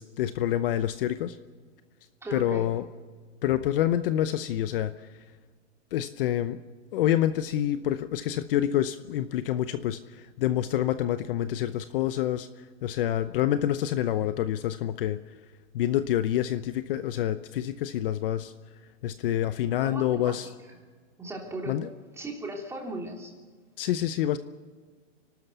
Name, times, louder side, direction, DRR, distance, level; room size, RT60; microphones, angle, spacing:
voice 1, 0.0-1.4 2.3-2.8 3.4-5.2 5.9-6.6 6.9-15.2 15.7-18.5 19.0-20.5 21.7-21.9 23.8-24.4, left 12 dB, 50° left, 12 dB, 0.8 m, -27 dB
voice 2, 2.2-2.7 19.7-20.4 21.2-21.8 22.2-23.3, right 1 dB, 5° right, 0 dB, 3.3 m, -37 dB
29.0 x 12.5 x 8.2 m, 1.5 s
hypercardioid pair, 145°, 36 cm